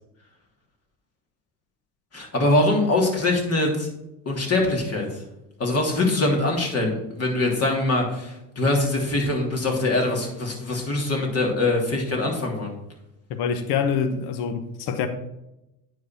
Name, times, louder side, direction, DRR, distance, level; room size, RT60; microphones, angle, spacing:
voice 1, 2.1-3.9 4.2-5.2 5.6-12.7, left 2 dB, 30° left, 3.0 m, -23 dB
voice 2, 13.3-15.1, left 6 dB, 55° left, 1.1 m, -25 dB
9.4 x 4.2 x 6.5 m
hypercardioid pair, 80°, 46 cm